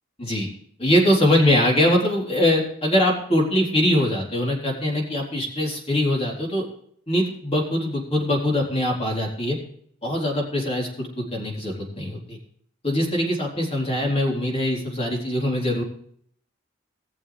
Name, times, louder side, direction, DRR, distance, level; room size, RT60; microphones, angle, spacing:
voice 1, 0.2-0.5 0.8-6.6 7.1-9.6 10.0-12.4 12.8-15.8, left 1 dB, 30° left, -2 dB, 4.0 m, -22 dB
19.5 x 7.2 x 3.5 m, 0.63 s
head